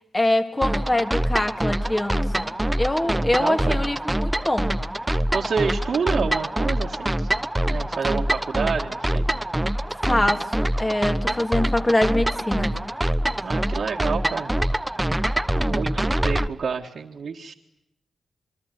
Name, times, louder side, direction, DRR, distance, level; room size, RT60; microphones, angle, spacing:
voice 1, 0.1-4.7 10.1-12.7, left 1 dB, 20° left, 7 dB, 2.9 m, -24 dB
sound 1, 0.6-16.5, right 1 dB, 15° right, 1.0 m, -25 dB
voice 2, 3.0-3.8 5.3-7.3 7.7-9.3 13.4-14.5 15.5-17.5, right 5 dB, 70° right, -2 dB, 2.0 m, -28 dB
27.0 x 23.0 x 9.6 m, 0.81 s
cardioid pair, 75°, 0 cm